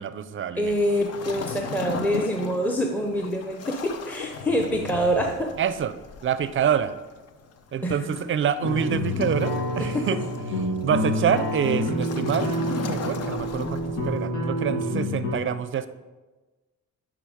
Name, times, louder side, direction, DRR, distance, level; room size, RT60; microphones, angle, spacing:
voice 1, 0.0-0.8 5.6-6.0 6.2-6.9 7.7-10.2 10.8-15.9, right 8 dB, 40° right, 13 dB, 0.5 m, -26 dB
Waves surf, 0.6-14.3, left 5 dB, 55° left, 0.7 m, -37 dB
voice 2, 0.6-5.5 7.8-8.0 9.9-10.1, equal, 5° left, 1 dB, 0.7 m, -25 dB
sound 1, 8.6-15.3, left 1 dB, 80° left, 1.8 m, -28 dB
9.6 x 3.7 x 5.0 m, 1.2 s
cardioid pair, 90°, 30 cm